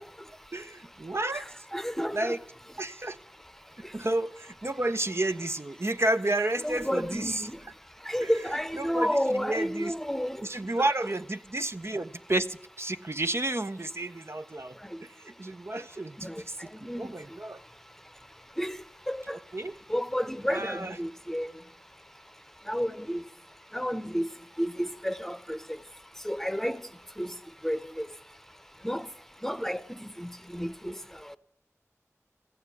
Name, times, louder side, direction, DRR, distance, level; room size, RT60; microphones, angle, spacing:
voice 1, 0.5-1.5 2.1-2.4 2.8-3.2 3.9-7.5 8.2-8.3 8.8-9.9 10.4-17.6 19.3-19.7 20.5-21.0, right 2 dB, 55° right, 0.6 m, -31 dB
voice 2, 1.7-2.4 6.6-7.6 8.1-10.4 16.2-16.4 16.9-17.1 18.6-18.8 19.1-19.3 19.9-21.5 22.7-23.2 23.7-24.2 24.6-25.6 26.2-26.8 27.2-27.3 27.6-28.1 28.8-29.1 29.4-31.0, equal, 5° left, 0.8 m, -31 dB
14.5 x 9.4 x 8.2 m
wide cardioid pair, 40°, 5 cm